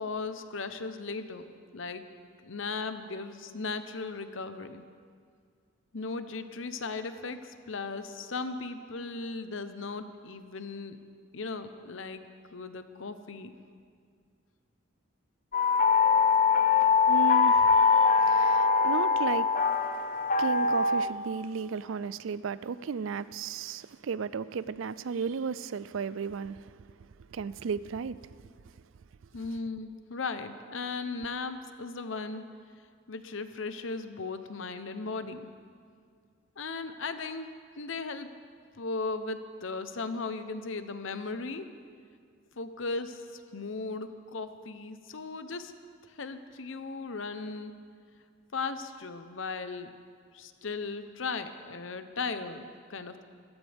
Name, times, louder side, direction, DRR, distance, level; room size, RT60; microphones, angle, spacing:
voice 1, 0.0-1.5 1.7-2.0 2.4-4.8 5.9-11.0 11.3-12.2 12.5-13.5 29.3-32.4 33.1-35.5 36.6-37.5 37.8-38.3 38.7-41.7 42.6-45.7 46.1-47.7 48.5-49.9 50.3-53.2, left 4 dB, 70° left, 0.9 m, -37 dB
sound 1, 15.5-21.1, left 5 dB, 40° left, 0.6 m, -23 dB
voice 2, 17.1-19.5 20.4-26.7 27.3-28.2, right 5 dB, 70° right, 0.4 m, -34 dB
24.5 x 14.5 x 3.5 m
head